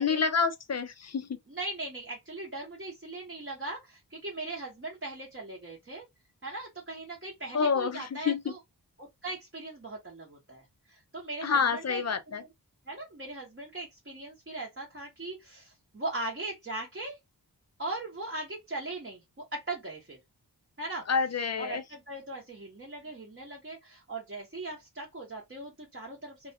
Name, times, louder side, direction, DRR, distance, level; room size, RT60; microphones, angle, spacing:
voice 1, 0.0-1.4 7.5-8.5 11.4-12.4 21.1-21.8, left 5 dB, 40° left, 0.4 m, -28 dB
voice 2, 1.5-6.0 6.4-8.6 9.0-12.0 12.3-12.5 12.9-17.2 17.8-20.2 20.8-21.1 21.6-26.5, right 2 dB, 30° right, 0.8 m, -39 dB
2.3 x 2.2 x 2.5 m
wide cardioid pair, 50°, 40 cm